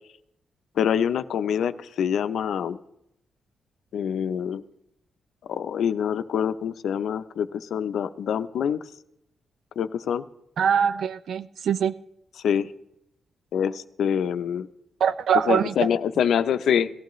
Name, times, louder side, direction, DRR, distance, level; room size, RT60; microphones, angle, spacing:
voice 1, 0.8-2.8 3.9-4.6 5.5-8.8 9.8-10.2 12.4-12.7 13.5-14.7 15.5-16.9, left 8 dB, 80° left, 12 dB, 0.6 m, -25 dB
voice 2, 10.6-11.9 15.0-15.7, right 7 dB, 70° right, 12 dB, 0.4 m, -23 dB
18.0 x 14.5 x 3.1 m, 0.80 s
wide cardioid pair, 140°, 0 cm